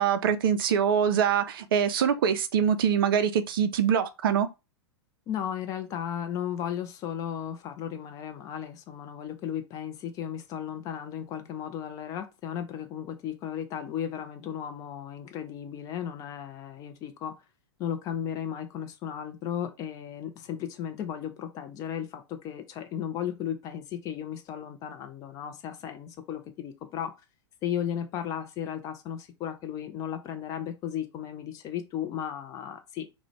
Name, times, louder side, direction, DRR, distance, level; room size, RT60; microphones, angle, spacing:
voice 1, 0.0-4.5, right 8 dB, 50° right, 0.4 m, -24 dB
voice 2, 5.3-17.3 17.8-27.1 27.6-33.1, left 9 dB, 25° left, 0.4 m, -35 dB
2.4 x 2.1 x 2.9 m
figure-of-eight pair, 100°, 15 cm